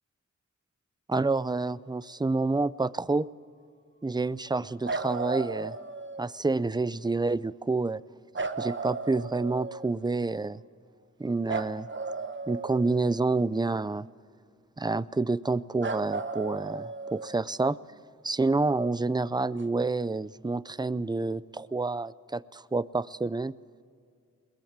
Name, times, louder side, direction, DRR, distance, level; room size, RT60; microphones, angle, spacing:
voice 1, 1.1-3.3 4.0-5.7 6.2-8.0 8.6-10.6 11.2-11.9 12.5-14.1 14.8-17.8 18.2-23.5, right 3 dB, 15° right, 18 dB, 0.5 m, -28 dB
sound 1, 4.8-6.3 8.4-10.0 11.5-13.4 15.8-17.5 19.6-19.7, right 4 dB, 40° right, 1.2 m, -35 dB
22.0 x 20.0 x 7.4 m, 2.3 s
wide cardioid pair, 70°, 31 cm